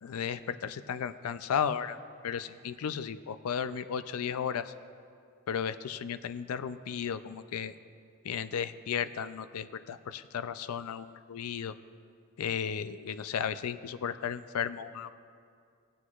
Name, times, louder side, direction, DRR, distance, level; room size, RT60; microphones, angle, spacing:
voice 1, 0.0-2.0 2.2-4.7 5.5-7.7 8.2-11.7 12.4-15.1, left 7 dB, 85° left, 13 dB, 0.4 m, -34 dB
20.0 x 7.9 x 2.4 m, 2.2 s
head